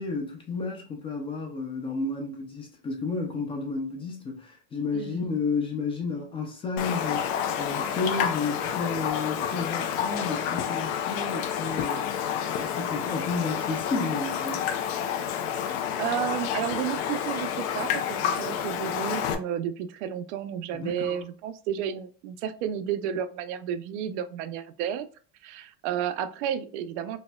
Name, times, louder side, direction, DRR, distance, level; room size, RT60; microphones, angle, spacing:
voice 1, 0.0-12.1 12.5-14.7 20.7-21.2, left 4 dB, 15° left, 0.4 m, -32 dB
Raindrop, 6.8-19.3, left 8 dB, 65° left, 0.5 m, -29 dB
voice 2, 16.0-25.1 25.4-27.2, right 9 dB, 85° right, 0.5 m, -32 dB
4.1 x 2.1 x 2.2 m
cardioid pair, 165°, 34 cm